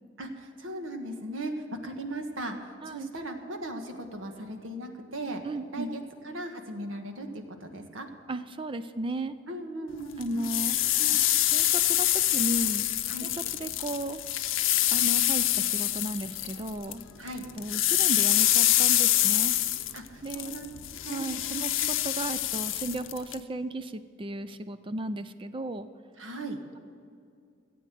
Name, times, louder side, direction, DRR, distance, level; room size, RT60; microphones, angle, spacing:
voice 1, 0.2-1.5 1.8-5.4 5.7-7.3 7.6-8.1 9.5-10.5 11.0-11.2 13.1-13.3 17.2-17.4 19.9-20.7 21.0-21.3 21.8-21.9 26.2-26.6, right 1 dB, 75° right, 5 dB, 1.5 m, -38 dB
voice 2, 5.4-5.9 8.3-9.4 10.2-10.8 11.4-12.9 13.2-14.2 14.9-17.0 17.5-19.5 20.2-20.6 21.1-25.9, right 2 dB, 25° right, 11 dB, 0.4 m, -35 dB
sound 1, 10.2-17.0 17.3-23.4, left 13 dB, 70° left, 0.7 m, -26 dB
16.0 x 8.5 x 7.6 m, 2.4 s
head